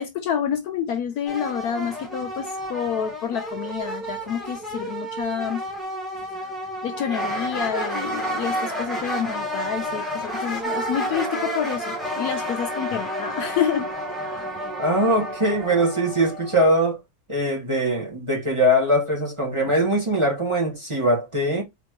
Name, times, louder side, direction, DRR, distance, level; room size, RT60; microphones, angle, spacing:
voice 1, 0.0-5.6 6.8-13.9, left 8 dB, 70° left, 1.0 m, -28 dB
sound 1, 1.3-16.7, equal, ahead, 1.3 m, -30 dB
voice 2, 14.8-17.0 17.3-21.6, right 1 dB, 20° right, 1.2 m, -21 dB
4.2 x 3.4 x 2.9 m
omnidirectional pair, 1.9 m